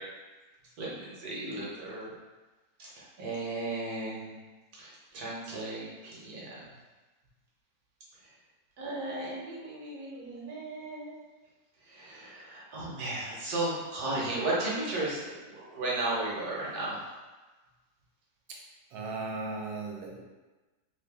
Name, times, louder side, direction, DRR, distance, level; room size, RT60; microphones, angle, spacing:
voice 1, 0.8-2.1 2.8-4.4 4.8-6.6 8.8-11.1 11.9-17.0, right 2 dB, 60° right, -5 dB, 1.3 m, -35 dB
voice 2, 18.9-20.2, right 3 dB, 80° right, -1 dB, 1.3 m, -37 dB
3.2 x 2.5 x 3.5 m, 1.2 s
omnidirectional pair, 2.0 m